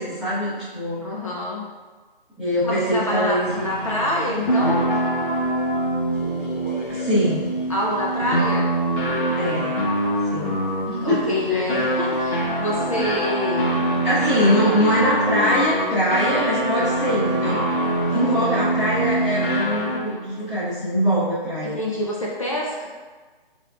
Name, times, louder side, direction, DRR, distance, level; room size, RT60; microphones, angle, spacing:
voice 1, 0.0-1.0 2.4-3.4 6.9-7.5 9.4-9.8 10.3-10.6 10.8-11.6 14.0-17.6 18.1-21.8, equal, ahead, -16 dB, 0.7 m, -23 dB
voice 2, 1.0-1.7 2.6-4.9 7.7-8.7 11.0-13.8 18.4-18.5 21.7-22.9, left 1 dB, 35° left, -3 dB, 0.4 m, -26 dB
sound 1, 3.5-20.2, right 1 dB, 60° left, 0.9 m, -24 dB
5.2 x 3.5 x 2.4 m, 1.3 s
figure-of-eight pair, 150°, 29 cm